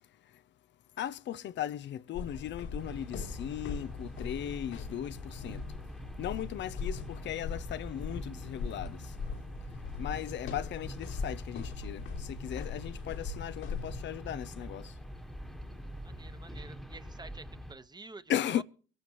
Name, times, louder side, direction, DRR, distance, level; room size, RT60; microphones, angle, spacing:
voice 1, 1.0-5.6 6.2-9.0 10.0-14.9 18.3-18.6, left 11 dB, 65° left, 0.5 m, -37 dB
sound 1, 2.1-14.1, left 5 dB, 85° left, 3.0 m, -41 dB
sound 2, 2.8-17.7, equal, ahead, 1.3 m, -45 dB
voice 2, 16.0-18.6, right 3 dB, 20° right, 1.1 m, -49 dB
24.0 x 12.0 x 3.0 m
cardioid pair, 90°, 20 cm